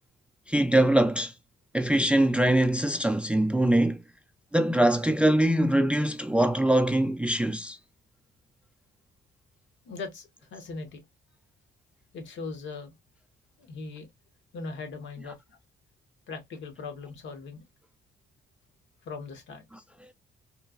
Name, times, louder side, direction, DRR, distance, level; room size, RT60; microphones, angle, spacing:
voice 1, 0.5-1.3 1.7-4.0 4.5-7.8, right 1 dB, 5° right, 0.3 m, -23 dB
voice 2, 9.8-11.0 12.1-12.9 13.6-14.1 14.5-15.6 16.3-17.6 19.0-19.6, left 4 dB, 70° left, 0.9 m, -39 dB
3.0 x 2.2 x 2.3 m
cardioid pair, 90°, 20 cm